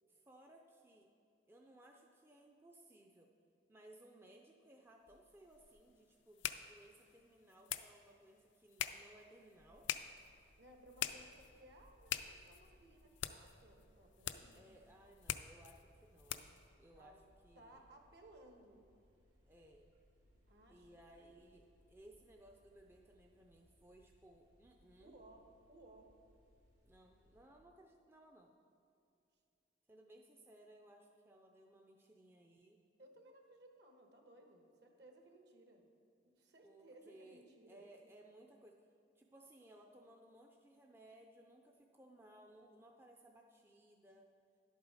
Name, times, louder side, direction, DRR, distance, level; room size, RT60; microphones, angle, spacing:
voice 1, 0.1-1.1 1.5-3.3 3.7-9.9 14.5-17.8 19.5-19.9 20.7-25.2 26.8-28.6 29.9-32.8 36.6-38.9 39.2-44.3, right 1 dB, 10° right, 1 dB, 0.4 m, -62 dB
sound 1, 5.1-16.7, left 10 dB, 75° left, 0.4 m, -46 dB
sound 2, 9.6-27.5, equal, 90° right, 2.6 m, -70 dB
voice 2, 10.6-14.7 16.9-17.2 17.5-18.8 20.5-21.7 25.0-26.1 33.0-35.9 36.2-37.9, right 1 dB, 60° right, 3 dB, 1.3 m, -62 dB
11.0 x 8.2 x 4.8 m, 2.6 s
head